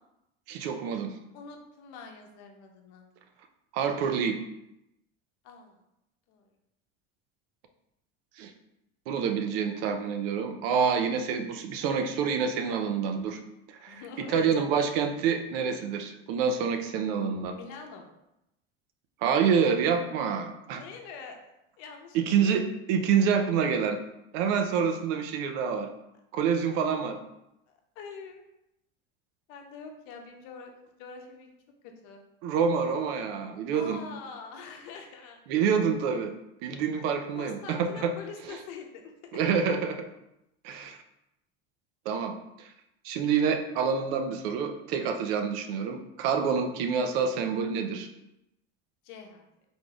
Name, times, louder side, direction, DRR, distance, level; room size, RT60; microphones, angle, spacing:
voice 1, 0.5-1.1 3.7-4.4 8.4-8.5 9.1-13.4 13.8-17.5 19.2-20.8 22.1-24.0 24.3-25.9 26.3-27.2 32.4-34.0 35.5-36.3 36.6-38.1 39.3-40.1 40.6-41.0 42.1-42.7 43.0-48.1, right 6 dB, 75° right, 6 dB, 0.6 m, -27 dB
voice 2, 1.3-3.0 5.4-5.8 6.3-6.4 13.9-14.8 17.5-18.1 20.8-22.6 28.0-28.4 29.5-30.7 31.0-31.6 31.8-32.2 33.7-35.4 37.3-39.4 49.0-49.5, left 5 dB, 65° left, 3 dB, 0.8 m, -44 dB
4.0 x 3.5 x 2.3 m, 0.87 s
cardioid pair, 135°, 30 cm